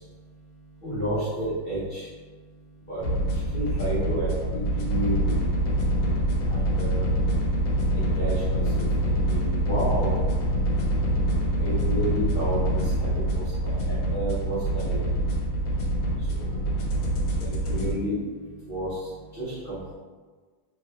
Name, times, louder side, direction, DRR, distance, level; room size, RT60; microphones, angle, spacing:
voice 1, 0.8-2.0 2.9-3.0 3.5-5.3 6.5-7.0 7.9-10.1 11.6-13.1 13.6-15.0 17.4-18.2 18.7-18.9 19.4-19.9, right 1 dB, 50° left, -10 dB, 0.7 m, -31 dB
sound 1, 3.0-17.9, right 1 dB, 85° left, 1.4 m, -25 dB
3.2 x 3.0 x 2.3 m, 1.4 s
omnidirectional pair, 2.1 m